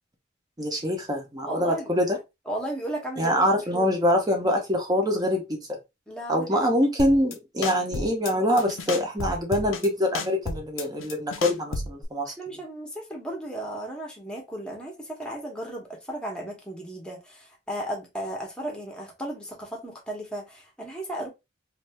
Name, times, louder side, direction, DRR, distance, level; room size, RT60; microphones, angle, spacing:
voice 1, 0.6-2.2 3.2-5.6 6.3-12.3, equal, 20° right, 0.8 m, -24 dB
voice 2, 1.4-1.9 2.5-3.9 6.1-6.7 12.2-21.3, right 1 dB, 5° left, 0.9 m, -35 dB
sound 1, 7.0-7.3 7.6-8.3 8.6-9.9 10.1-12.0, left 3 dB, 85° left, 0.6 m, -32 dB
2.7 x 2.6 x 3.3 m
head